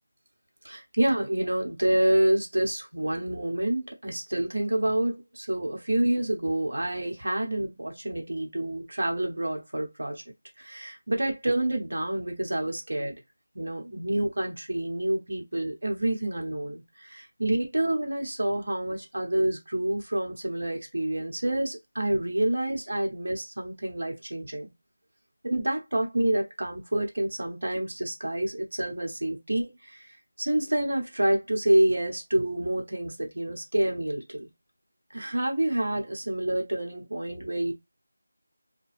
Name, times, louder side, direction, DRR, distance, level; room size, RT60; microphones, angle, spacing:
voice 1, 0.6-10.2 10.6-13.1 13.5-24.7 25.4-34.5 35.1-37.7, right 1 dB, 70° right, 1.0 m, -28 dB
2.7 x 2.2 x 3.4 m
figure-of-eight pair, 175°, 0 cm